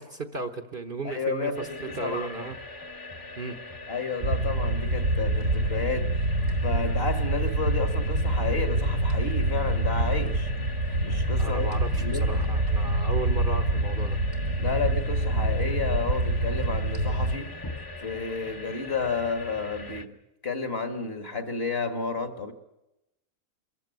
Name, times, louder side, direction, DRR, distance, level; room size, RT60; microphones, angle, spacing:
voice 1, 0.0-2.6 3.4-3.6 11.4-14.2, right 2 dB, 40° right, 9 dB, 1.2 m, -35 dB
voice 2, 1.0-2.3 3.9-6.1 6.6-10.5 11.0-11.7 12.0-12.4 14.6-17.5 18.0-20.1 20.4-22.5, left 4 dB, 45° left, 8 dB, 2.0 m, -31 dB
sound 1, 1.5-20.1, left 2 dB, 15° left, 1.0 m, -41 dB
sound 2, 4.2-17.4, right 1 dB, 70° right, 2.1 m, -26 dB
24.0 x 14.5 x 9.3 m, 0.91 s
omnidirectional pair, 1.5 m